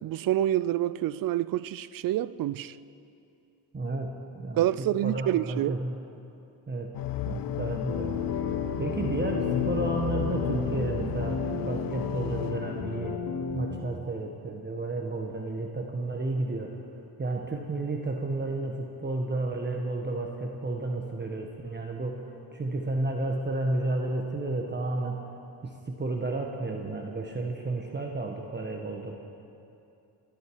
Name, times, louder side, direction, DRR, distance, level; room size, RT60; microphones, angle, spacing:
voice 1, 0.0-2.8 4.6-5.7, right 13 dB, 55° right, 0.5 m, -27 dB
voice 2, 3.7-5.9 6.7-6.9 7.2-8.3 8.8-13.2 13.5-16.8 17.2-25.2 25.6-29.1, right 2 dB, 25° right, 1.3 m, -32 dB
sound 1, 6.9-13.2, left 14 dB, 55° left, 0.5 m, -33 dB
sound 2, 7.9-13.7, left 4 dB, 75° left, 2.8 m, -33 dB
28.5 x 10.5 x 4.7 m
cardioid pair, 90°, 42 cm